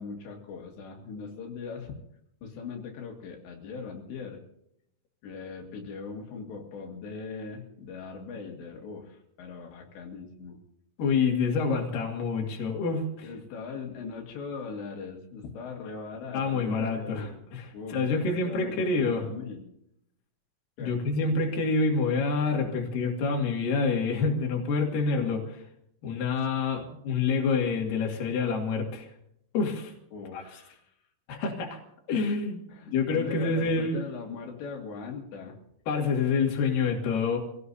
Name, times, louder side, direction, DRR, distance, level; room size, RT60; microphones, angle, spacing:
voice 1, 0.0-2.0 2.4-4.4 5.2-10.6 13.2-17.4 17.7-19.7 20.8-21.0 30.1-30.8 32.7-35.6, left 5 dB, 85° left, 1 dB, 4.4 m, -40 dB
voice 2, 11.0-13.3 16.3-19.3 20.8-25.6 26.0-29.1 29.5-29.9 30.3-30.4 31.3-31.8 32.1-34.0 35.9-37.4, left 4 dB, 60° left, 0 dB, 3.7 m, -27 dB
26.0 x 17.5 x 2.8 m, 0.74 s
omnidirectional pair, 4.9 m